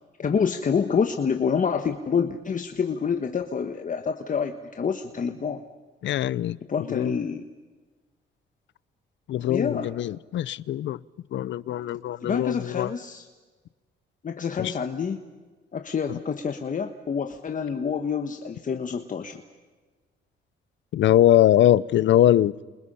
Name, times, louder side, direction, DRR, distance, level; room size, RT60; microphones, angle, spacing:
voice 1, 0.2-5.6 6.7-7.4 9.5-9.9 12.2-13.3 14.2-15.2 15.7-19.4, left 6 dB, 40° left, 1.4 m, -27 dB
voice 2, 6.0-6.6 6.9-7.1 9.3-11.0 11.3-12.9 14.6-14.7 16.1-16.2 20.9-22.5, left 12 dB, 70° left, 0.7 m, -22 dB
29.0 x 27.5 x 5.6 m
cardioid pair, 90°, 20 cm